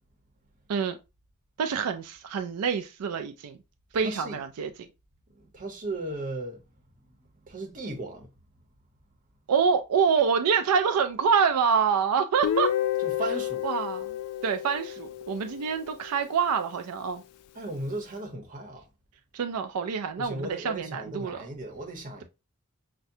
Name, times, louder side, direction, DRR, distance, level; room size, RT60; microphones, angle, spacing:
voice 1, 1.6-3.6 3.9-4.9 9.5-12.7 13.6-14.2 14.4-17.2 19.3-21.5, right 6 dB, 85° right, 0.4 m, -26 dB
voice 2, 4.0-4.4 5.4-6.6 7.5-8.3 13.0-13.6 17.5-18.8 20.2-22.2, right 1 dB, 35° right, 1.0 m, -36 dB
Guitar, 12.4-16.3, left 10 dB, 75° left, 0.3 m, -31 dB
5.7 x 2.2 x 2.6 m
head